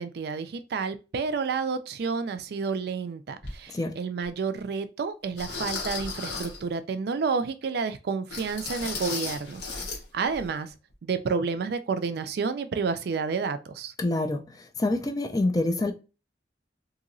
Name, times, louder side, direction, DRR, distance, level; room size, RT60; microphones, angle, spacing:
voice 1, 0.0-9.6 10.1-10.7 11.0-13.9, right 5 dB, 60° right, 0.4 m, -30 dB
sound 1, 3.4-3.6 4.2-4.3 5.4-6.6 8.3-10.0 10.3-10.5 10.9-11.0, left 4 dB, 70° left, 0.9 m, -35 dB
voice 2, 14.0-14.4 14.8-15.9, left 2 dB, 20° left, 0.4 m, -26 dB
2.9 x 2.7 x 2.6 m
head